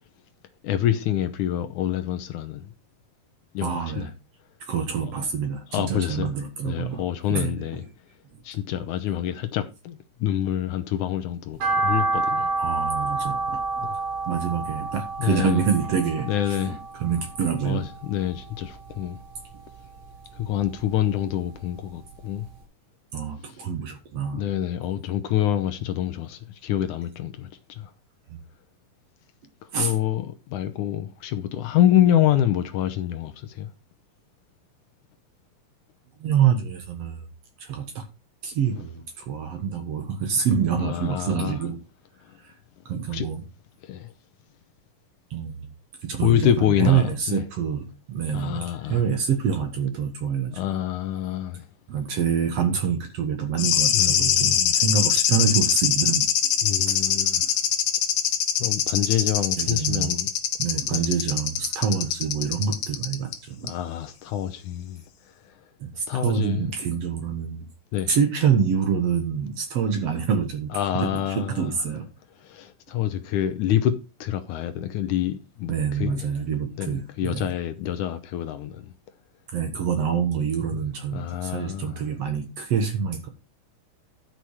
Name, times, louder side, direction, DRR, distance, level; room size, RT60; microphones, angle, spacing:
voice 1, 0.6-2.7 3.5-4.1 5.1-5.3 5.7-6.3 6.6-7.8 8.4-12.5 13.8-14.0 15.2-15.6 16.3-16.8 17.6-19.2 20.3-22.5 24.3-27.5 27.8-27.9 29.8-33.7 38.7-38.8 40.8-41.6 43.1-43.3 43.8-44.1 46.2-47.4 48.3-49.0 50.5-51.6 53.9-54.7 56.6-57.4 58.6-60.3 60.9-61.1 63.6-65.0 66.1-66.7 67.9-68.1 70.7-71.7 72.4-76.2 76.8-78.9 81.1-82.0, left 11 dB, 70° left, 2.1 m, -26 dB
voice 2, 3.6-4.1 4.6-7.0 7.3-7.8 12.6-13.9 14.3-16.3 16.6-17.8 23.1-24.5 28.3-28.4 29.7-29.9 36.2-37.3 37.6-38.0 38.4-41.8 42.4-42.5 42.9-43.4 45.3-45.7 46.0-50.5 51.9-56.3 56.9-57.0 59.6-60.2 60.6-63.7 65.8-67.7 68.1-72.1 75.7-77.5 79.5-83.3, right 7 dB, 55° right, 2.0 m, -26 dB
sound 1, 11.6-17.9 18.3-19.4 19.8-21.2 21.6-21.7 22.1-22.2 22.5-22.6, right 3 dB, 85° right, 6.2 m, -28 dB
sound 2, 53.6-63.4 63.7-63.8, left 9 dB, 90° left, 2.9 m, -23 dB
11.5 x 6.1 x 4.7 m
omnidirectional pair, 4.0 m